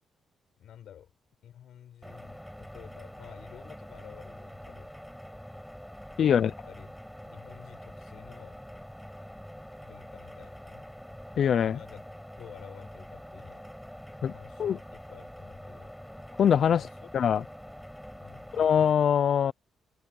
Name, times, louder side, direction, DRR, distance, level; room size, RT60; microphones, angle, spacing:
voice 1, 0.6-1.1 1.4-4.9 6.1-6.9 7.2-8.6 9.8-10.9 11.6-12.0 12.4-13.7 14.3-15.9 16.7-17.1 18.2-18.5, left 10 dB, 65° left, 6.6 m, -51 dB
sound 1, 2.0-18.9, equal, ahead, 5.4 m, -45 dB
voice 2, 6.2-6.5 11.4-11.8 14.2-14.3 14.6-14.8 16.4-16.9 17.1-17.4 18.5-19.5, left 8 dB, 50° left, 0.5 m, -23 dB
cardioid pair, 145°, 0 cm